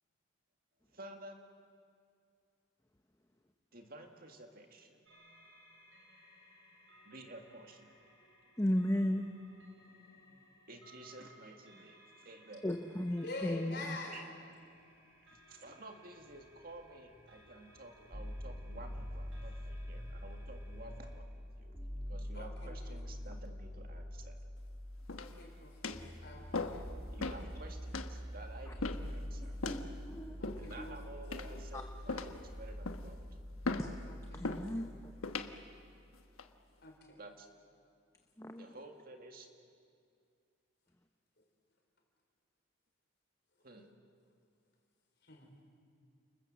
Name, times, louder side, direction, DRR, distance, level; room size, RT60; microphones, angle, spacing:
voice 1, 0.9-1.4 3.7-5.0 7.0-7.9 10.4-12.7 14.1-14.2 15.3-24.5 27.1-29.6 30.6-33.2 37.2-37.5 38.6-39.5 43.6-43.9, right 2 dB, 45° right, 4 dB, 2.0 m, -52 dB
sound 1, 5.1-21.2, right 1 dB, 70° right, 4.7 m, -60 dB
voice 2, 8.6-9.3 12.6-14.0 29.6-30.9 31.7-31.8 33.8-33.9 34.3-34.9 38.4-38.6, left 1 dB, 15° left, 5 dB, 0.8 m, -35 dB
voice 3, 13.2-14.3 22.3-23.0 25.2-25.9 26.2-27.0 30.4-31.0 34.1-34.9 36.8-37.2 45.2-45.5, left 2 dB, 50° left, 2 dB, 4.3 m, -47 dB
sound 2, 18.1-36.1, equal, 15° right, 2.9 m, -45 dB
sound 3, 25.1-25.4 25.8-26.1 26.5-26.9 27.2-27.4 27.9-28.1 28.8-29.1 29.6-29.9 30.4-30.8 31.3-31.7 32.1-32.4 32.8-33.1 33.6-33.9 34.4-34.7 35.2-35.5 36.1-36.5, left 3 dB, 90° left, 1.3 m, -38 dB
30.0 x 21.0 x 7.5 m, 2.3 s
head